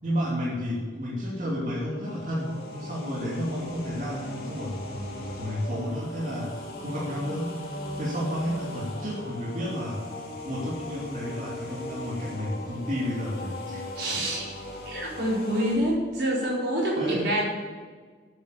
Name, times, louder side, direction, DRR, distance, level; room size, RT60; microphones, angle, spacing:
voice 1, 0.0-10.0 10.4-13.8 17.0-17.3, equal, 45° right, -6 dB, 2.8 m, -31 dB
sound 1, 2.0-15.8, left 1 dB, 55° left, 2.5 m, -39 dB
voice 2, 14.0-14.4 14.9-17.4, right 1 dB, 75° right, -4 dB, 4.4 m, -26 dB
9.7 x 8.0 x 8.5 m, 1.5 s
head